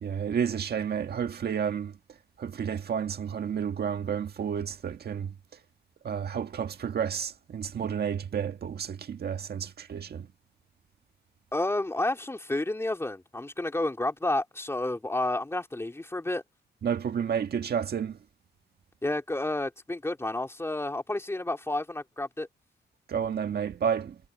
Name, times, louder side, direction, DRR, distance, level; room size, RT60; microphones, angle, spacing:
voice 1, 0.0-1.9 2.4-5.3 6.0-10.3 16.8-18.2 23.1-24.2, right 7 dB, 55° right, 1.7 m, -31 dB
voice 2, 11.5-16.4 19.0-22.5, left 2 dB, 15° left, 3.3 m, -30 dB
cardioid pair, 115°, 19 cm